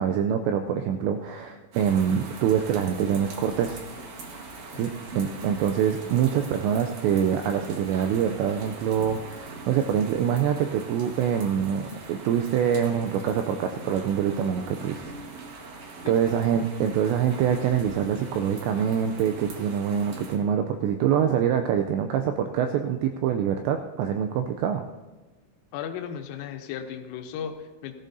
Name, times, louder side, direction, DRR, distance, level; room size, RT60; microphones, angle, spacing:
voice 1, 0.0-3.8 4.7-15.0 15.6-24.9, right 8 dB, 90° right, 6 dB, 2.5 m, -25 dB
sound 1, 1.7-20.4, right 3 dB, 70° right, 1.7 m, -42 dB
voice 2, 25.7-27.9, left 8 dB, 85° left, 6 dB, 3.5 m, -36 dB
17.5 x 14.0 x 2.7 m, 1.2 s
omnidirectional pair, 5.7 m